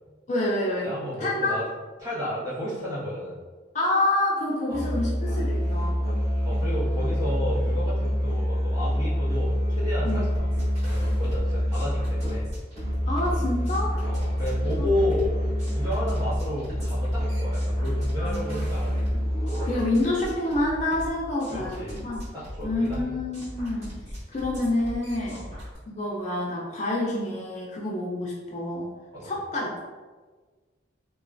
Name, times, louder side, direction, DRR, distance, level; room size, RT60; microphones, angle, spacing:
voice 1, 0.3-0.9 1.2-1.5 3.7-6.0 10.0-10.3 13.1-13.9 14.8-14.9 18.2-18.6 19.6-22.2 22.6-23.9 24.3-25.4 25.9-28.9 29.2-29.8, left 1 dB, 40° left, -4 dB, 0.4 m, -27 dB
voice 2, 0.8-1.6 2.0-3.3 4.7-4.9 6.4-10.5 10.8-12.5 14.1-15.4 15.7-19.0 21.5-22.0 22.3-23.1 25.3-25.5 29.1-29.3, left 1 dB, 20° right, -10 dB, 1.2 m, -32 dB
Musical instrument, 4.7-20.0, equal, 55° right, 1.3 m, -26 dB
sound 1, 10.3-25.8, equal, 35° right, 1.5 m, -39 dB
3.1 x 2.2 x 2.5 m, 1.4 s
head